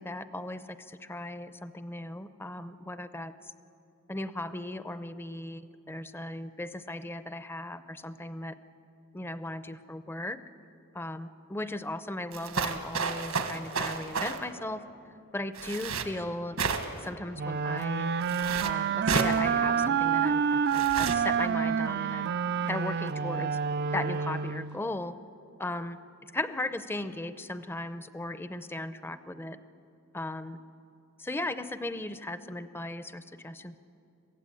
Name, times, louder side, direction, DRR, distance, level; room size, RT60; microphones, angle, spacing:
voice 1, 0.0-3.3 4.1-8.6 9.1-10.4 10.9-14.8 15.3-16.6 17.0-18.1 18.6-22.3 22.7-23.6 23.9-25.1 25.6-26.0 26.3-29.6 30.1-30.6 31.2-33.8, left 1 dB, 10° left, 12 dB, 0.6 m, -37 dB
sound 1, 12.3-14.4 15.6-16.1 16.6-17.1 18.2-18.7 19.1-19.4 20.7-21.2, right 5 dB, 85° right, 1.5 m, -31 dB
sound 2, 17.4-24.8, right 7 dB, 50° right, 0.4 m, -28 dB
23.0 x 16.0 x 8.6 m, 2.7 s
head